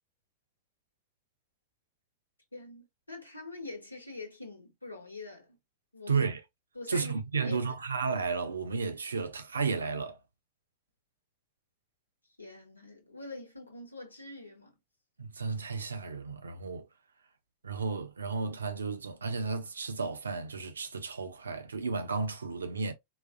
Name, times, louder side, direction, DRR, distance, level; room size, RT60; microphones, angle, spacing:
voice 1, 2.5-5.6 5.9-6.3 6.7-7.7 12.4-14.7, left 2 dB, 85° left, 1.0 m, -45 dB
voice 2, 6.1-6.4 6.9-10.2 15.2-16.9 17.6-22.9, right 4 dB, 75° right, 0.5 m, -33 dB
3.9 x 2.2 x 2.4 m
figure-of-eight pair, 90°, 0 cm